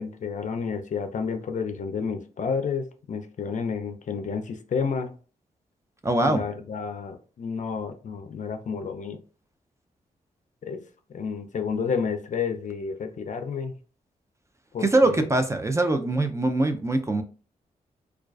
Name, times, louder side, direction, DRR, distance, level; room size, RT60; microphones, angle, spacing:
voice 1, 0.0-5.1 6.2-9.2 10.6-10.8 11.1-13.7 14.7-15.3, left 6 dB, 55° left, 7 dB, 0.4 m, -30 dB
voice 2, 6.0-6.4 14.8-17.2, right 2 dB, 20° right, 7 dB, 0.4 m, -22 dB
2.3 x 2.3 x 2.3 m, 0.37 s
cardioid pair, 50°, 16 cm